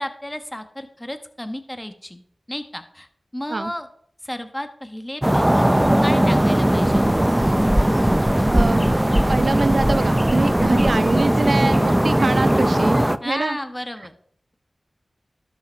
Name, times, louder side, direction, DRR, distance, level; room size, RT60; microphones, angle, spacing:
voice 1, 0.0-2.2 2.5-3.1 3.3-3.9 4.2-5.7 6.0-7.3 13.2-14.1, left 1 dB, 15° left, 8 dB, 1.3 m, -32 dB
sound 1, 5.2-13.2, right 1 dB, 15° right, 0.5 m, -18 dB
voice 2, 8.5-8.9 9.3-13.0 13.2-13.6, right 3 dB, 65° right, 15 dB, 0.5 m, -24 dB
12.0 x 6.1 x 4.5 m, 0.65 s
cardioid pair, 45°, 0 cm